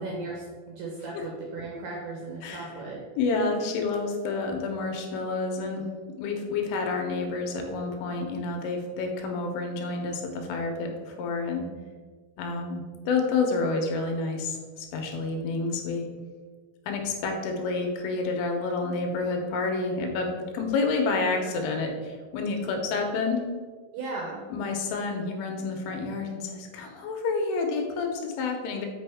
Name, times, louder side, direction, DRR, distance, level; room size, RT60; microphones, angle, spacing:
voice 1, 0.0-3.0 23.9-24.4, right 3 dB, 80° right, -1 dB, 2.4 m, -36 dB
voice 2, 3.2-5.8 6.2-11.7 12.4-16.0 16.9-23.4 24.5-28.9, left 3 dB, 80° left, 3 dB, 3.4 m, -29 dB
7.8 x 5.4 x 3.5 m, 1.5 s
omnidirectional pair, 5.7 m